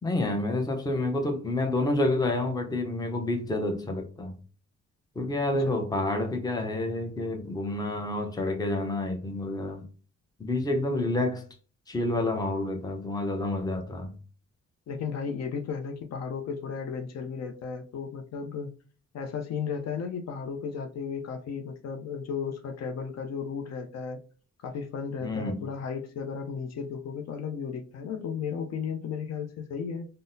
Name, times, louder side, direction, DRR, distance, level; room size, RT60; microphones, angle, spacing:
voice 1, 0.0-4.3 5.2-9.9 10.4-11.4 11.9-14.2 25.2-25.6, left 2 dB, 15° left, 0.6 m, -29 dB
voice 2, 14.9-18.7 19.1-24.2 24.6-30.1, left 6 dB, 60° left, 0.5 m, -34 dB
3.7 x 2.0 x 2.6 m
cardioid pair, 90°, 30 cm